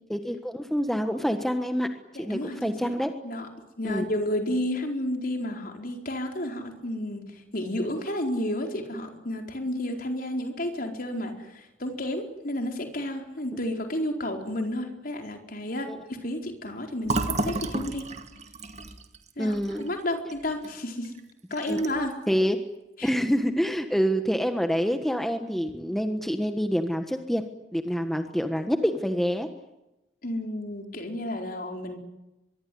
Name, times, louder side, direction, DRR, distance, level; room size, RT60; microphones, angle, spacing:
voice 1, 0.1-1.9 2.2-3.1 3.8-4.1 15.9-16.0 19.4-19.9 21.7-21.8 22.3-22.6 23.0-27.4 27.7-29.5, equal, ahead, 6 dB, 1.4 m, -26 dB
voice 2, 2.1-3.0 3.2-3.5 3.8-18.1 19.4-21.1 21.5-22.2 23.0-23.1 30.2-32.0, left 1 dB, 50° left, 4 dB, 4.5 m, -31 dB
Fill (with liquid), 17.0-20.7 21.0-21.2 21.5-22.1, right 2 dB, 35° right, 2.1 m, -32 dB
24.5 x 22.5 x 9.5 m, 0.96 s
head